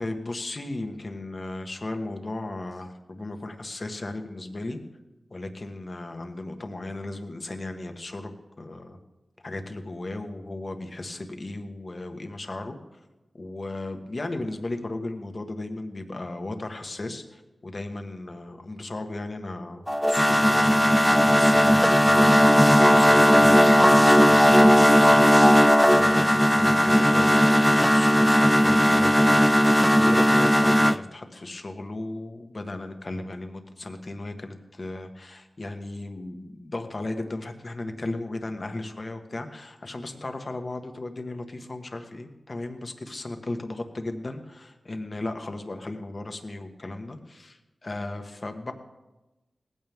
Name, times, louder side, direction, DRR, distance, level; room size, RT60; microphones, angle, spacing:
voice 1, 0.0-4.8 5.3-8.3 8.6-9.0 9.4-12.8 13.4-25.3 25.9-48.7, left 2 dB, 40° left, 6 dB, 1.6 m, -36 dB
sound 1, 19.9-31.0, equal, 5° left, 0.4 m, -17 dB
18.5 x 15.0 x 3.7 m, 1.0 s
wide cardioid pair, 75°, 0 cm